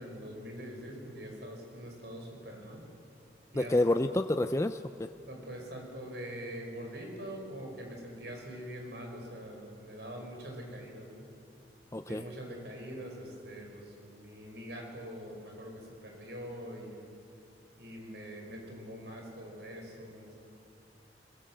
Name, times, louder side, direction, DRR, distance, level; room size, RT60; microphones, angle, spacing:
voice 1, 0.0-2.8 3.5-3.8 5.3-11.3 12.1-17.2 17.8-20.5, equal, 65° right, 2 dB, 5.6 m, -44 dB
voice 2, 3.6-5.1 11.9-12.2, left 1 dB, 15° left, 8 dB, 0.5 m, -28 dB
23.0 x 22.0 x 7.8 m, 2.5 s
head